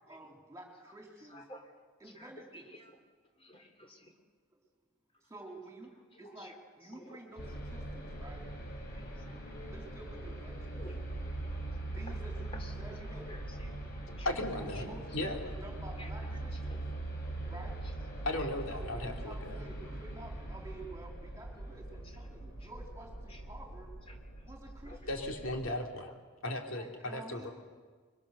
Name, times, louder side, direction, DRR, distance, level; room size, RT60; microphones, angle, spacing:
voice 1, 0.0-1.5 2.0-2.7 4.1-4.2 5.3-8.5 9.7-10.8 11.4-11.5 11.9-13.3 14.5-16.8 17.1-17.8 18.7-23.9 24.4-25.0 26.8-27.5, right 1 dB, 15° right, 0 dB, 3.8 m, -50 dB
voice 2, 1.3-1.8 2.0-3.0 3.4-4.1 6.1-6.5 6.9-7.2 8.9-11.3 12.6-12.7 13.0-14.3 16.0-17.0 22.6-22.7 23.3-23.4 24.1-24.4 24.8-25.3 25.7-26.2 26.7-27.0, left 1 dB, 25° left, 4 dB, 3.1 m, -54 dB
sound 1, 7.4-25.8, right 2 dB, 50° left, 5.2 m, -42 dB
voice 3, 14.2-15.3 18.2-19.6 25.1-25.8 26.4-27.5, left 1 dB, 75° left, 2 dB, 2.9 m, -36 dB
24.0 x 23.0 x 6.8 m, 1.4 s
head